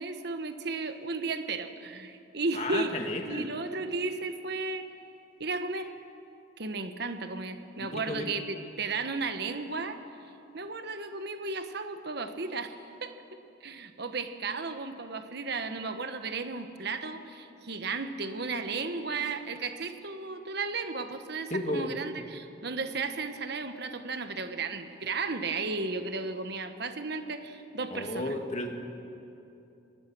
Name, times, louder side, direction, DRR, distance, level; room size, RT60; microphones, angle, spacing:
voice 1, 0.0-3.0 3.3-4.9 5.4-5.9 6.6-10.0 10.5-28.3, right 3 dB, 60° right, 8 dB, 1.3 m, -34 dB
voice 2, 2.5-3.5 7.8-8.3 21.5-21.9 27.9-28.8, left 1 dB, 35° left, 3 dB, 2.1 m, -33 dB
27.5 x 20.0 x 6.2 m, 2.8 s
head